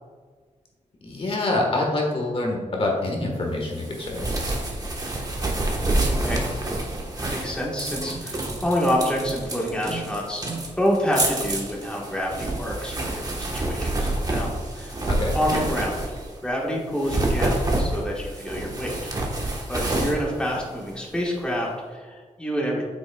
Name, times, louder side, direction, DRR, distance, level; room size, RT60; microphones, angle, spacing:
voice 1, 1.0-4.3 15.1-15.3, left 2 dB, 45° left, 0 dB, 1.4 m, -26 dB
sound 1, 3.7-16.4 16.9-21.2, right 2 dB, 30° right, 1.2 m, -28 dB
voice 2, 6.0-6.4 7.2-10.4 10.8-15.1 15.3-16.0 16.4-19.1 19.7-22.8, equal, 5° left, -3 dB, 1.3 m, -27 dB
8.3 x 6.1 x 2.3 m, 1.5 s
wide cardioid pair, 120°, 13 cm